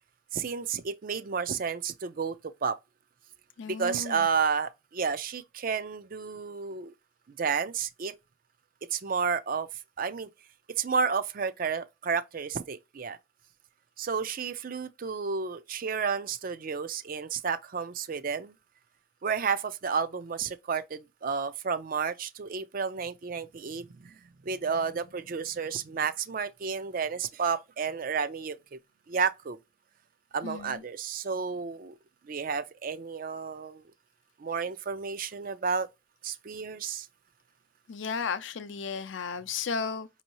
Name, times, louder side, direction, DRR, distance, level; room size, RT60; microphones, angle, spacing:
voice 1, 0.3-2.4 2.6-2.8 3.7-6.9 7.4-8.1 8.9-9.7 10.0-10.3 10.8-13.2 14.0-18.5 19.2-28.8 29.1-29.6 30.3-31.9 32.3-33.8 34.4-35.9 36.2-37.1, right 6 dB, 45° right, 0.4 m, -31 dB
voice 2, 3.6-4.3 30.4-30.8 37.9-40.1, left 5 dB, 65° left, 0.5 m, -34 dB
5.3 x 2.7 x 2.9 m
head